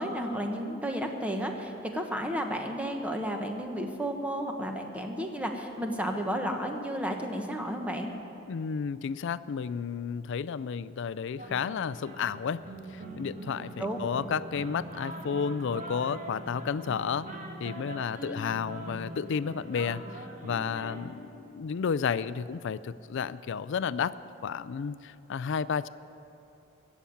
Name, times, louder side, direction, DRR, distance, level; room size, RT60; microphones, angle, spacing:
voice 1, 0.0-8.1 13.5-13.6 13.8-14.0 18.2-18.4, equal, 5° right, 3 dB, 1.2 m, -32 dB
voice 2, 8.5-12.6 12.9-17.3 17.6-24.2 24.4-25.9, left 6 dB, 65° left, 17 dB, 0.4 m, -32 dB
sound 1, 11.4-21.0, right 1 dB, 40° right, 1.4 m, -42 dB
15.5 x 7.1 x 9.2 m, 3.0 s
head